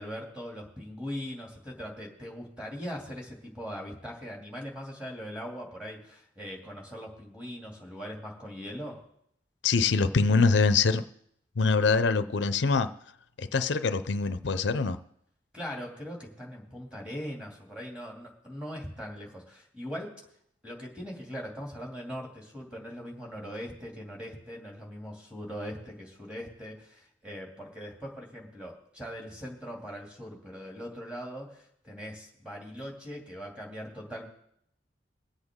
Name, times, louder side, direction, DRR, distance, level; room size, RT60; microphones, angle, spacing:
voice 1, 0.0-9.0 15.5-20.1 20.6-34.2, equal, 5° right, -2 dB, 2.6 m, -40 dB
voice 2, 9.6-11.0 11.6-12.9 13.4-15.0, left 4 dB, 85° left, 12 dB, 0.6 m, -24 dB
23.0 x 8.1 x 3.7 m, 0.73 s
head